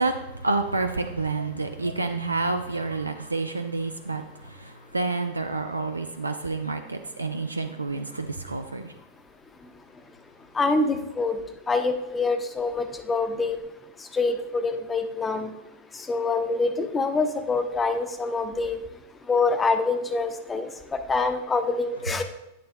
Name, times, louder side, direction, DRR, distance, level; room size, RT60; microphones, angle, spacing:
voice 1, 0.0-8.9, right 3 dB, 80° right, 8 dB, 0.5 m, -29 dB
voice 2, 10.5-11.4 11.7-13.6 14.1-15.5 16.1-18.8 19.3-20.7 21.1-22.2, left 3 dB, 15° left, 7 dB, 0.8 m, -25 dB
11.5 x 8.5 x 2.2 m, 0.92 s
figure-of-eight pair, 90°, 0 cm